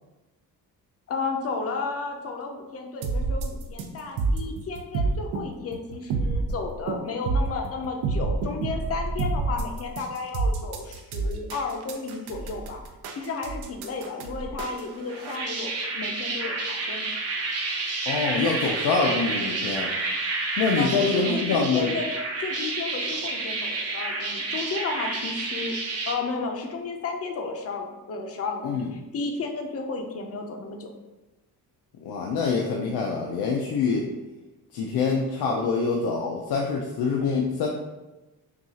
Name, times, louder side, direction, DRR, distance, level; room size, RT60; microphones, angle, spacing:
voice 1, 1.1-12.8 13.1-17.0 20.8-22.1 22.4-25.7 26.1-30.9, left 4 dB, 40° left, 3 dB, 0.5 m, -33 dB
sound 1, 3.0-15.4, right 3 dB, 80° right, 0.6 m, -28 dB
sound 2, 15.1-26.1, right 3 dB, 40° right, 0.6 m, -30 dB
voice 2, 18.1-19.9 20.6-21.9 28.6-28.9 32.0-34.0 34.7-37.7, left 4 dB, 85° left, 0 dB, 0.6 m, -25 dB
5.9 x 2.3 x 2.8 m, 1.1 s
cardioid pair, 170°, 39 cm